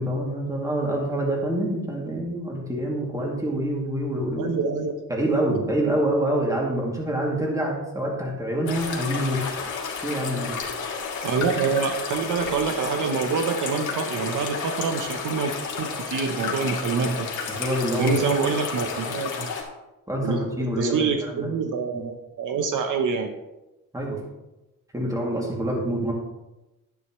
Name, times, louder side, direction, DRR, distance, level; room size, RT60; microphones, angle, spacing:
voice 1, 0.0-4.5 5.1-9.4 10.0-10.6 17.6-18.2 20.1-21.5 21.9-22.1 23.9-24.2 24.9-26.1, right 1 dB, 10° right, -2 dB, 2.6 m, -26 dB
voice 2, 4.4-4.9 11.2-17.3 18.0-19.5 20.2-20.4 20.8-23.4, right 5 dB, 65° right, 5 dB, 0.9 m, -26 dB
sound 1, 8.7-19.6, left 5 dB, 60° left, 2.3 m, -31 dB
11.0 x 10.0 x 3.1 m, 1.0 s
cardioid pair, 125°, 34 cm